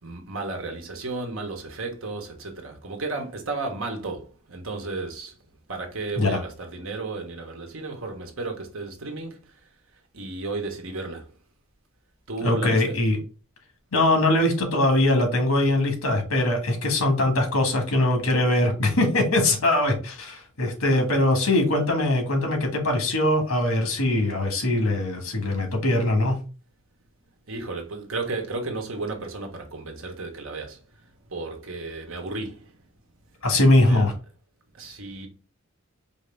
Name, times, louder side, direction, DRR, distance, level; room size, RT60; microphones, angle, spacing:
voice 1, 0.0-5.4 5.7-9.7 10.1-11.3 12.3-13.0 20.6-20.7 27.5-32.8 33.8-34.1 34.7-35.3, right 3 dB, 65° right, 1.2 m, -33 dB
voice 2, 12.4-13.2 13.9-26.4 33.4-34.1, left 1 dB, 85° left, 1.6 m, -22 dB
4.7 x 2.8 x 3.3 m
head